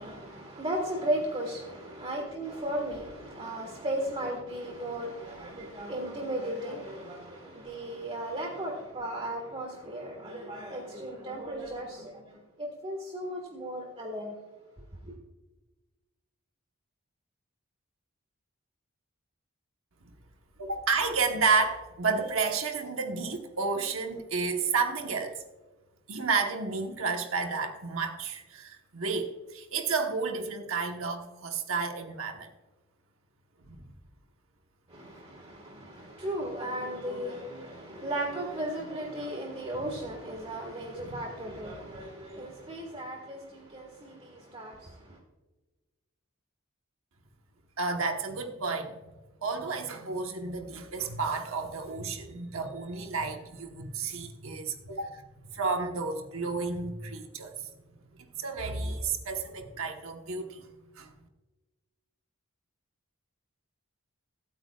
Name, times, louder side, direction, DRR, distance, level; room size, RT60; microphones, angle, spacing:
voice 1, 0.0-14.4 14.8-15.1 34.9-45.2, right 1 dB, 25° right, 0 dB, 1.6 m, -36 dB
voice 2, 20.6-25.4 26.1-32.5 33.7-33.8 41.1-41.2 47.8-48.9 49.4-55.2 55.5-57.7 58.4-60.6 61.0-61.1, right 4 dB, 70° right, 4 dB, 1.2 m, -31 dB
23.5 x 8.8 x 2.4 m, 1.2 s
head